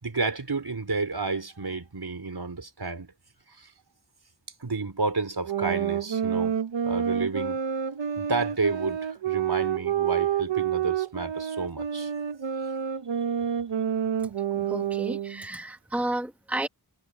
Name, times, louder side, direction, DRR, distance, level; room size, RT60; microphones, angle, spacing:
voice 1, 0.0-3.1 3.5-3.7 4.6-6.6 6.8-7.6 8.2-12.1, right 3 dB, 60° right, 4.6 m, -31 dB
sound 1, 5.5-15.4, right 8 dB, 90° right, 0.8 m, -28 dB
voice 2, 14.5-16.7, right 1 dB, 5° right, 1.2 m, -32 dB
wide cardioid pair, 50°, 43 cm